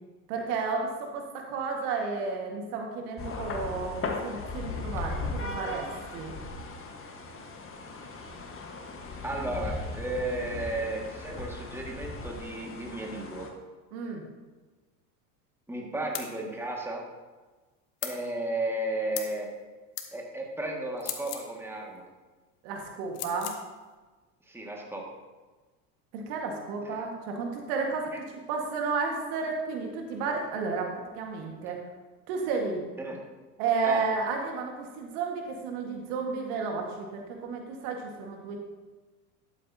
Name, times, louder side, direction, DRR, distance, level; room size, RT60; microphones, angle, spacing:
voice 1, 0.3-5.9 6.1-6.3 13.9-14.2 22.6-23.6 26.1-28.1 28.5-30.9 31.1-31.8 32.3-32.8 33.6-38.6, right 4 dB, 65° right, 2 dB, 1.8 m, -32 dB
sound 1, 3.2-13.5, left 3 dB, 25° left, 1.4 m, -37 dB
voice 2, 9.2-13.5 15.7-17.0 18.0-19.5 20.1-22.0 24.5-25.0 26.8-26.9 28.1-28.2 33.0-33.2 33.8-34.0, right 1 dB, 5° right, -1 dB, 1.9 m, -34 dB
sound 2, 16.1-16.3 18.0-18.2 19.1-19.4 20.0-20.1 21.0-21.5 23.1-23.6, left 10 dB, 80° left, 1.2 m, -36 dB
12.0 x 8.4 x 2.8 m, 1.3 s
hypercardioid pair, 85°, 48 cm